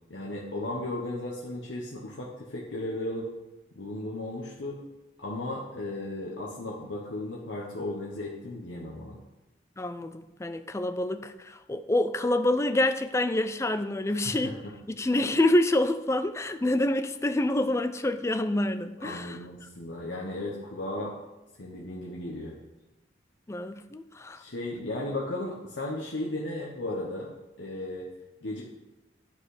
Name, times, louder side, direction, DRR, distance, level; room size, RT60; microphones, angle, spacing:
voice 1, 0.1-3.3 3.7-4.8 5.2-9.2 14.1-14.5 19.0-21.2 21.6-22.6 24.3-27.3 27.6-28.1 28.4-28.6, left 1 dB, 85° left, 1.2 m, -35 dB
voice 2, 9.8-14.5 14.9-19.4 23.5-24.4, left 1 dB, 15° left, 0.4 m, -27 dB
10.5 x 5.3 x 5.0 m
head